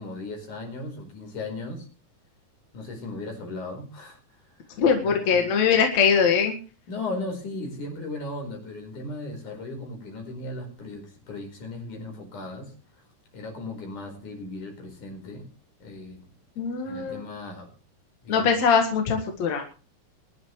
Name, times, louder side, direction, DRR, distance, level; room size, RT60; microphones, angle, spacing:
voice 1, 0.0-1.9 2.7-4.2 4.5-4.6 5.0-5.5 6.9-12.7 13.3-15.5 15.8-16.2 16.9-17.7 18.2-18.6, left 2 dB, 85° left, 3 dB, 6.3 m, -36 dB
voice 2, 4.8-6.5 16.6-17.2 18.3-19.6, left 6 dB, 65° left, 4 dB, 3.0 m, -22 dB
23.0 x 11.5 x 3.2 m, 0.36 s
omnidirectional pair, 3.4 m